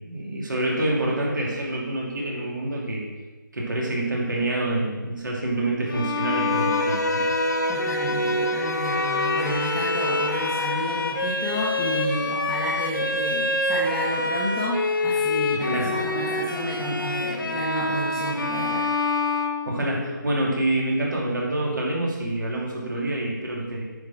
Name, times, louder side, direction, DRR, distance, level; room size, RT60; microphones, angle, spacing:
voice 1, 0.0-3.0 3.5-7.3 15.5-15.9 19.7-23.8, right 1 dB, 65° right, -3 dB, 2.8 m, -27 dB
Bowed string instrument, 5.9-20.2, left 2 dB, 90° left, 1.2 m, -26 dB
Bowed string instrument 2, 6.2-11.2, left 2 dB, 50° left, 0.5 m, -30 dB
voice 2, 7.7-18.9, equal, 5° left, -8 dB, 0.8 m, -30 dB
9.2 x 4.3 x 6.0 m, 1.2 s
figure-of-eight pair, 165°, 11 cm